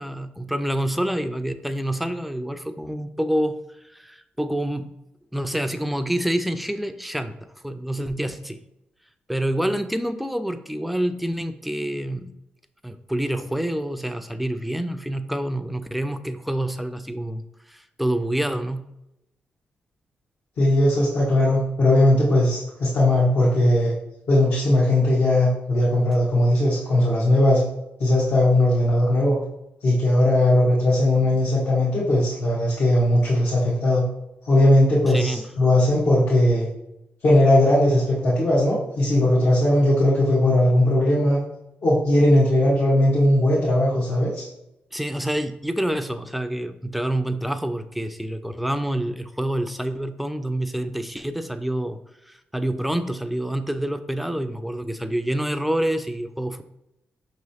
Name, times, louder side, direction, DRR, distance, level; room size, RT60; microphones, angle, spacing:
voice 1, 0.0-3.6 3.8-4.9 5.3-7.4 7.6-8.6 9.3-12.3 12.8-17.4 17.7-18.9 35.1-35.4 44.9-52.0 52.3-56.6, right 1 dB, ahead, 9 dB, 0.3 m, -27 dB
voice 2, 20.6-23.9 24.3-27.6 28.0-29.4 29.8-34.0 34.4-36.7 37.2-41.4 41.8-44.4, left 1 dB, 70° left, -8 dB, 1.2 m, -19 dB
5.4 x 3.1 x 2.8 m, 0.85 s
cardioid pair, 70°, 4 cm